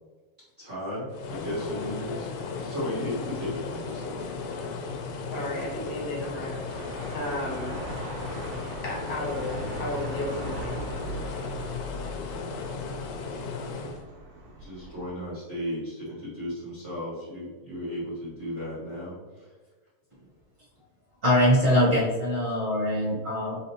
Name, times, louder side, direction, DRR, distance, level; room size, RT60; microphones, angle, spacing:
voice 1, 0.6-2.3 2.6-4.2 14.6-19.2, left 1 dB, 65° right, -9 dB, 0.7 m, -35 dB
sound 1, 1.1-14.0, left 4 dB, 80° left, 1.6 m, -36 dB
voice 2, 5.3-7.7 8.8-10.8, left 1 dB, 60° left, -4 dB, 1.3 m, -34 dB
sound 2, 6.7-15.1, right 1 dB, 85° right, 1.0 m, -39 dB
voice 3, 21.2-23.6, equal, 40° right, -8 dB, 1.2 m, -23 dB
4.1 x 3.8 x 2.9 m, 1.3 s
omnidirectional pair, 3.4 m